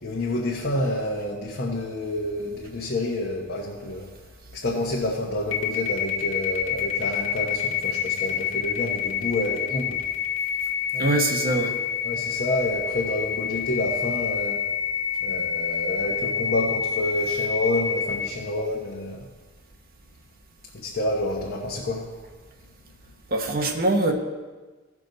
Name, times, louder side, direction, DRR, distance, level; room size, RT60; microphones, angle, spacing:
voice 1, 0.0-4.1 4.5-10.0 10.9-11.2 12.0-14.6 15.2-19.3 20.7-22.1, left 1 dB, 55° left, -3 dB, 1.1 m, -28 dB
sound 1, 5.5-18.3, left 8 dB, 70° left, 1.4 m, -27 dB
voice 2, 11.0-11.8 23.3-24.1, right 2 dB, 50° right, 3 dB, 1.1 m, -23 dB
16.5 x 6.0 x 4.0 m, 1.3 s
head